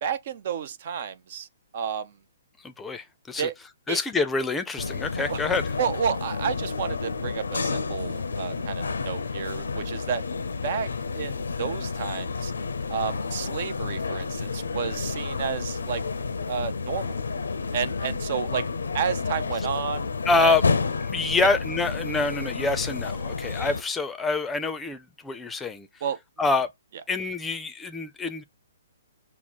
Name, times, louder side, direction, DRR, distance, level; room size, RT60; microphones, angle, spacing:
voice 1, 0.0-1.5 1.7-2.1 3.4-3.5 3.9-4.0 5.3-5.4 5.8-10.2 10.6-12.5 12.9-16.0 16.5-17.2 17.7-18.7 18.9-20.1 20.4-20.5 21.4-21.5 26.0-26.2, right 7 dB, 50° right, 0.5 m, -31 dB
voice 2, 2.6-3.5 3.9-5.6 20.3-20.6 21.0-25.9 26.4-26.7 27.1-28.4, left 3 dB, 10° left, 0.5 m, -26 dB
sound 1, 4.8-23.8, left 4 dB, 75° left, 0.5 m, -30 dB
5.7 x 2.1 x 4.1 m
figure-of-eight pair, 130°, 0 cm